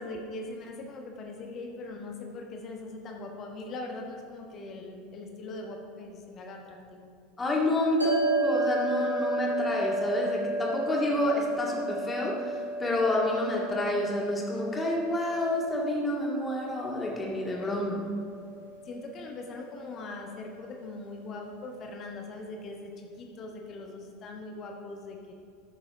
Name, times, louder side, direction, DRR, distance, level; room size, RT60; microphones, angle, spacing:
voice 1, 0.0-7.1 17.5-18.0 18.8-25.3, left 2 dB, 40° left, 2 dB, 1.2 m, -41 dB
voice 2, 7.4-12.5 12.8-18.0, left 1 dB, 20° left, -3 dB, 2.1 m, -29 dB
sound 1, 8.0-20.5, right 1 dB, 90° right, 1.6 m, -33 dB
13.5 x 6.7 x 3.8 m, 2.4 s
figure-of-eight pair, 75°, 0 cm